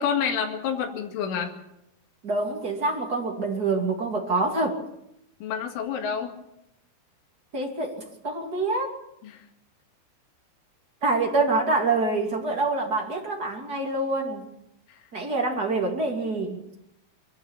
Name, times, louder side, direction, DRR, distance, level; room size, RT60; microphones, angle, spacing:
voice 1, 0.0-1.5 5.4-6.3 9.2-9.5 14.9-15.0, left 7 dB, 75° left, 3 dB, 4.5 m, -28 dB
voice 2, 2.2-4.8 7.5-9.0 11.0-14.4 15.1-16.6, right 3 dB, 25° right, 0 dB, 2.4 m, -26 dB
23.0 x 14.5 x 8.5 m, 0.83 s
omnidirectional pair, 5.7 m